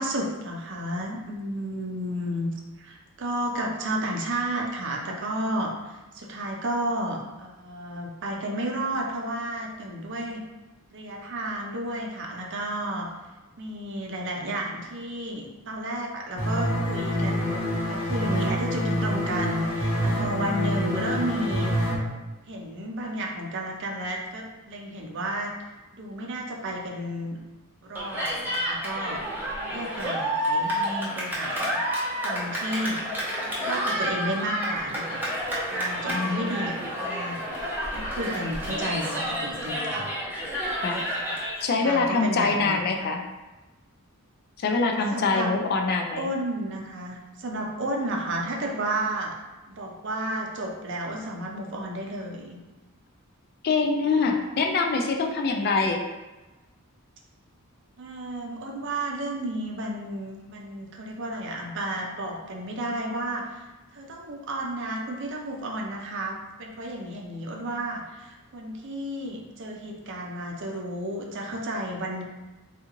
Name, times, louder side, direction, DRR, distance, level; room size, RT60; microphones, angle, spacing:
voice 1, 0.0-2.5 2.8-10.4 10.9-13.1 13.6-17.6 17.8-21.7 22.5-25.5 25.9-27.4 27.8-29.2 29.7-31.8 32.2-33.2 33.6-37.4 37.9-40.1 41.2-41.4 41.8-42.8 45.1-45.5 46.2-49.3 49.7-52.6 58.0-63.6 63.9-72.2, right 1 dB, 55° right, 0 dB, 0.5 m, -32 dB
sound 1, 16.4-21.9, equal, 80° left, 1.0 m, -26 dB
Cheering, 28.0-41.6, equal, 10° right, 0.6 m, -30 dB
voice 2, 36.1-36.6 40.8-41.1 41.6-43.2 44.6-46.3 53.6-56.0, left 4 dB, 45° left, 3 dB, 0.3 m, -24 dB
3.6 x 2.4 x 3.0 m, 1.1 s
head